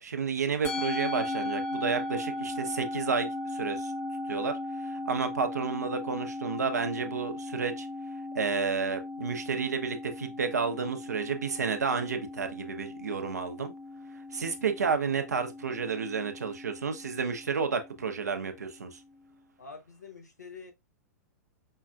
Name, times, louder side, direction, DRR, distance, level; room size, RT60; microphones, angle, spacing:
voice 1, 0.0-3.9 4.2-7.9 8.3-13.7 14.3-19.0, right 5 dB, 75° right, 0.7 m, -31 dB
Musical instrument, 0.6-19.1, left 2 dB, 30° left, 0.9 m, -38 dB
voice 2, 19.6-20.7, left 5 dB, 80° left, 0.9 m, -46 dB
5.4 x 2.3 x 2.3 m
figure-of-eight pair, 100°, 9 cm